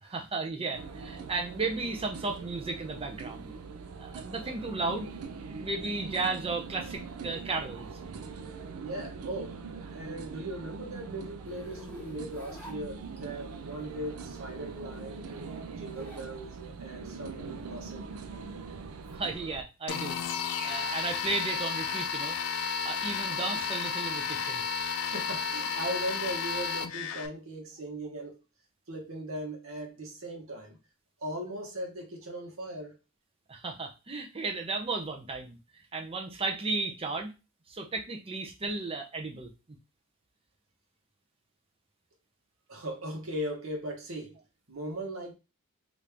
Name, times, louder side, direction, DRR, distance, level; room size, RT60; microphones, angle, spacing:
voice 1, 0.0-3.5 4.0-5.1 5.6-7.9 19.1-20.2 20.6-22.4 22.8-24.6 33.5-37.3 37.7-39.5, right 3 dB, 25° right, 0.6 m, -34 dB
sound 1, 0.7-19.6, right 5 dB, 85° right, 0.4 m, -42 dB
voice 2, 8.8-9.6 9.9-18.0 25.0-28.4 28.9-30.8 31.2-33.0 42.7-44.4 44.7-45.3, right 1 dB, 70° right, 1.0 m, -38 dB
Zipper (clothing), 11.5-13.5 14.7-16.3 16.7-19.1, equal, 5° left, 1.0 m, -50 dB
sound 2, 19.9-27.3, left 6 dB, 85° left, 0.4 m, -32 dB
3.0 x 2.6 x 3.4 m
head